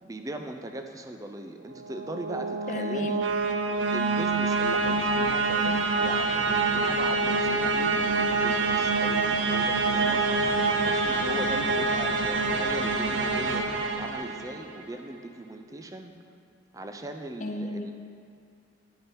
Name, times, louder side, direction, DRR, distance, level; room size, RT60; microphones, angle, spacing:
voice 1, 0.0-3.3 3.9-10.3 10.8-16.1 16.7-17.9, right 1 dB, 20° right, 5 dB, 0.4 m, -39 dB
sound 1, 1.8-14.8, right 3 dB, 85° right, 0.6 m, -26 dB
voice 2, 2.7-3.2 17.4-17.9, left 2 dB, 45° left, 4 dB, 0.6 m, -33 dB
9.9 x 6.2 x 4.5 m, 2.3 s
head